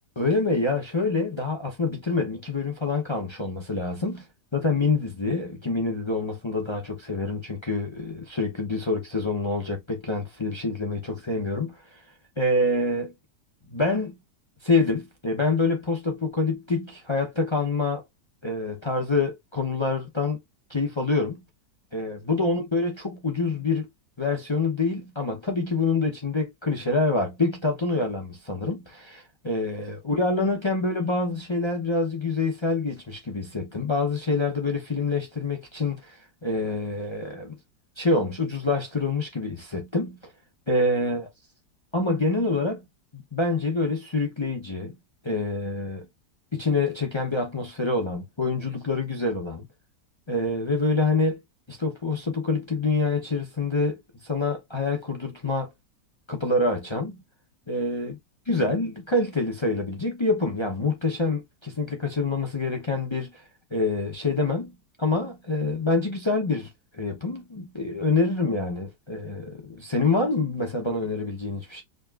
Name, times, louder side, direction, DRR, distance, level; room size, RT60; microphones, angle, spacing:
voice 1, 0.2-4.3 4.5-12.0 12.4-13.1 13.7-14.2 14.6-18.0 18.4-20.4 20.7-21.4 21.9-23.9 24.2-37.6 38.0-40.2 40.7-41.3 41.9-42.9 43.1-45.0 45.2-46.1 46.5-49.7 50.3-51.4 51.7-55.7 56.3-57.2 57.7-58.2 58.5-63.4 63.7-71.8, left 3 dB, 35° left, 0.4 m, -26 dB
5.0 x 2.9 x 2.4 m
omnidirectional pair, 1.8 m